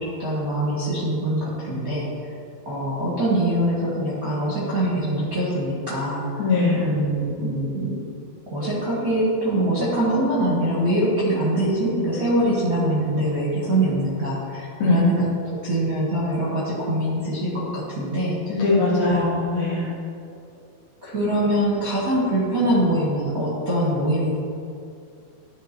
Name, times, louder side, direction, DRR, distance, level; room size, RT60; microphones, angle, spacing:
voice 1, 0.0-2.1 2.7-6.5 6.8-8.0 8.5-18.6 19.0-19.4 21.0-24.3, right 1 dB, 35° right, -9 dB, 1.7 m, -23 dB
voice 2, 6.4-6.8 14.8-15.1 18.5-19.9, left 3 dB, 60° left, -6 dB, 2.9 m, -21 dB
13.0 x 4.8 x 4.4 m, 2.4 s
omnidirectional pair, 4.2 m